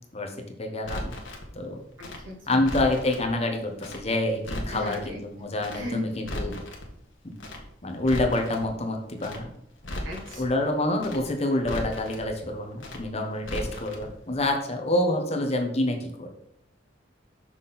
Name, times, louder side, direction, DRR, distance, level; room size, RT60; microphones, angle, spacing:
voice 1, 0.6-1.1 1.5-1.8 2.5-6.6 7.8-9.5 10.3-16.3, left 1 dB, 35° left, 3 dB, 1.1 m, -27 dB
Crackle, 0.8-1.5 2.0-3.3 3.8-4.0 4.3-5.1 5.6-5.8 6.1-6.9 7.4-7.6 7.9-8.7 9.2-9.4 9.7-10.5 11.0-11.2 11.5-12.3 12.8-13.0 13.3-14.1 14.3-14.4, left 1 dB, 85° left, 1.4 m, -36 dB
voice 2, 2.0-2.6 4.7-5.2 5.7-6.0 10.0-10.4, equal, 90° right, -1 dB, 2.3 m, -37 dB
6.0 x 5.9 x 4.1 m, 0.75 s
head